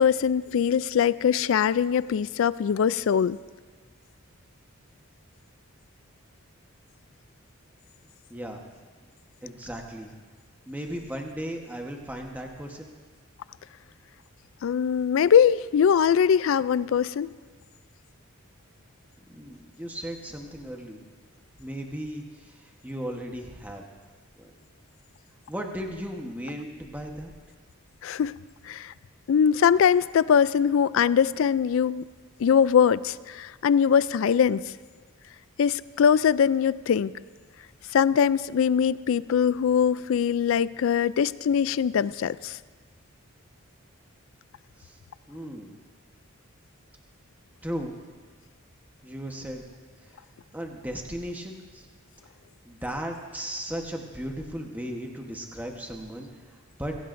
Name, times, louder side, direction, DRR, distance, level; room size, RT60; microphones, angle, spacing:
voice 1, 0.0-3.4 14.6-17.3 28.0-28.4 28.7-28.9 29.3-32.0 32.4-34.6 35.6-37.1 37.9-42.6, left 7 dB, 65° left, 18 dB, 0.3 m, -22 dB
voice 2, 8.3-8.6 9.4-10.1 10.7-12.9 19.3-21.0 21.6-23.8 24.4-24.5 25.5-27.3 44.8-45.0 45.3-45.7 47.6-47.9 49.0-49.6 50.1-50.2 50.5-51.9 52.6-57.0, equal, 10° right, 2 dB, 1.1 m, -36 dB
22.0 x 16.5 x 2.6 m, 1.5 s
head